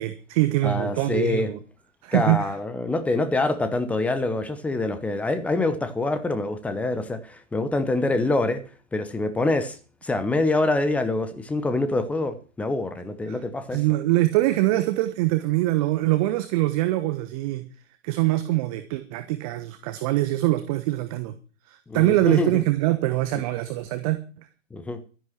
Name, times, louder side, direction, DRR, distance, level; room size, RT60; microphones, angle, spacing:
voice 1, 0.0-1.6 2.0-2.5 13.3-13.4 13.7-17.7 18.0-21.3 21.7-24.2, right 17 dB, 30° right, 1.2 m, -23 dB
voice 2, 0.6-1.5 2.1-8.6 8.9-13.8 21.9-22.6 24.7-25.0, left 2 dB, 5° left, 0.8 m, -25 dB
13.0 x 10.0 x 6.1 m
figure-of-eight pair, 120°, 39 cm